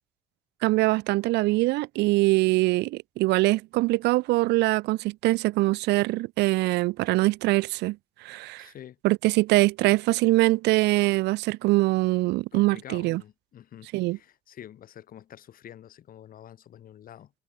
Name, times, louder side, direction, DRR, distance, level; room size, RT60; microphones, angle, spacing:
voice 1, 0.6-8.7 9.0-13.2 13.9-14.2, right 20 dB, 85° right, 0.6 m, -23 dB
voice 2, 8.6-9.0 12.5-17.3, left 10 dB, 55° left, 7.1 m, -47 dB
cardioid pair, 110°, 17 cm